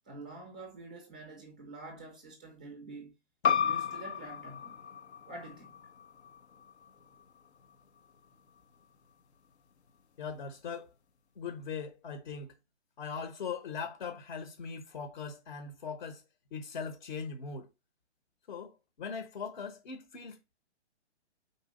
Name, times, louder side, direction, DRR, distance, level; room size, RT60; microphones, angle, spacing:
voice 1, 0.1-3.1 3.6-4.8 5.3-5.8, right 2 dB, 5° right, 0.4 m, -47 dB
sound 1, 3.4-8.6, left 8 dB, 70° left, 0.9 m, -35 dB
voice 2, 10.2-10.9 11.3-12.5 13.0-16.2 16.5-17.7 18.5-20.6, left 5 dB, 50° left, 1.2 m, -40 dB
4.8 x 4.1 x 5.1 m
hypercardioid pair, 165°, 35 cm